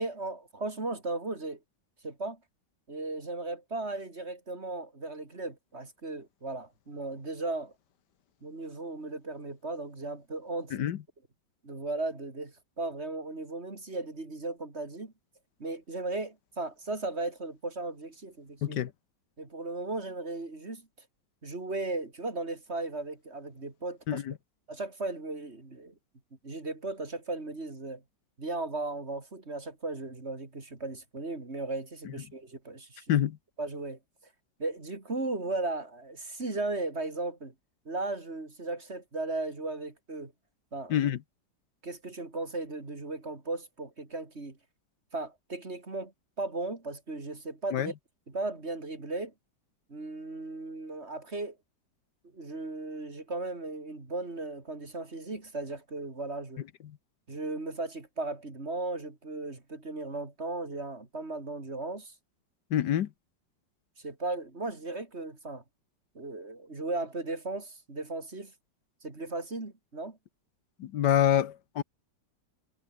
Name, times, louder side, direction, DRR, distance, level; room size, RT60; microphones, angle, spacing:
voice 1, 0.0-1.6 2.0-2.4 2.9-7.7 8.4-10.9 11.6-15.1 15.6-18.8 19.4-20.9 21.4-24.2 24.7-25.9 26.4-28.0 28.4-33.1 33.6-34.0 34.6-37.5 37.9-40.3 40.7-41.1 41.8-44.6 45.1-46.1 46.4-47.9 48.3-49.3 49.9-51.6 52.3-56.6 57.3-62.1 64.0-65.6 66.2-68.5 69.0-70.2, right 2 dB, 35° right, 3.6 m, -36 dB
voice 2, 18.6-18.9 24.1-24.3 32.0-32.1 33.1-33.4 40.9-41.2 47.7-47.9 56.8-57.0 62.7-63.1 70.8-71.8, left 10 dB, 65° left, 1.5 m, -27 dB
omnidirectional pair, 2.0 m